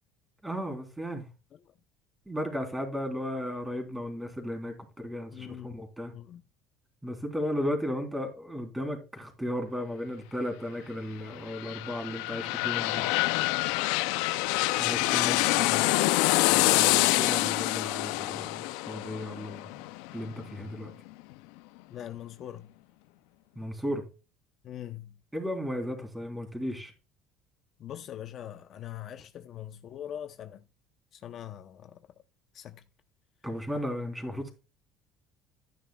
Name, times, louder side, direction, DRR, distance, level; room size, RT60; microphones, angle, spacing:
voice 1, 0.4-1.3 2.3-6.1 7.0-13.1 14.8-15.8 16.5-19.8 20.1-20.9 23.6-24.0 25.3-26.9 33.4-34.5, equal, 5° right, 3.6 m, -35 dB
voice 2, 5.3-5.8 6.1-6.4 15.1-16.1 21.9-22.7 24.6-25.1 27.8-30.6 31.1-32.0 32.5-32.8, left 11 dB, 45° left, 0.8 m, -42 dB
sound 1, 11.3-20.9 21.3-21.4, left 20 dB, 90° left, 0.5 m, -26 dB
13.5 x 10.0 x 2.3 m
cardioid pair, 140°, 0 cm